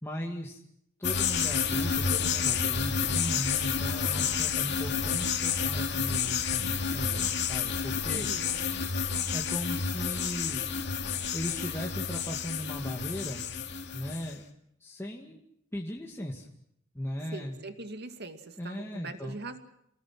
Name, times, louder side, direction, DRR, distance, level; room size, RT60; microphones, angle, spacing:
voice 1, 0.0-0.6 1.0-8.3 9.3-10.7 11.3-13.4 13.9-14.4 14.8-15.4 15.7-16.5 16.9-17.6 18.6-19.4, equal, 10° left, -1 dB, 2.1 m, -37 dB
sound 1, 1.0-14.3, left 6 dB, 60° left, 2.5 m, -30 dB
voice 2, 8.1-8.7 17.3-19.6, right 2 dB, 55° right, 7 dB, 2.3 m, -42 dB
29.5 x 20.5 x 6.1 m, 0.75 s
head